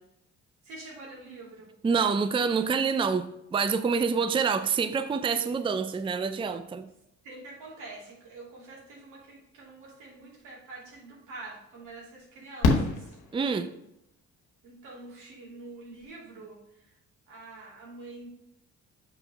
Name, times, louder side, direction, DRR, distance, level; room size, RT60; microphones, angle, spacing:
voice 1, 0.6-1.7 7.2-13.2 14.6-16.9 17.3-18.3, right 2 dB, 90° right, -3 dB, 2.7 m, -46 dB
voice 2, 1.8-6.9 13.3-13.7, right 5 dB, 15° right, 10 dB, 0.4 m, -27 dB
Fireworks, 10.9-11.0 12.6-13.9 15.7-15.8 16.0-16.1, left 3 dB, 80° left, 1.2 m, -26 dB
6.6 x 3.3 x 6.0 m, 0.79 s
cardioid pair, 90°, 30 cm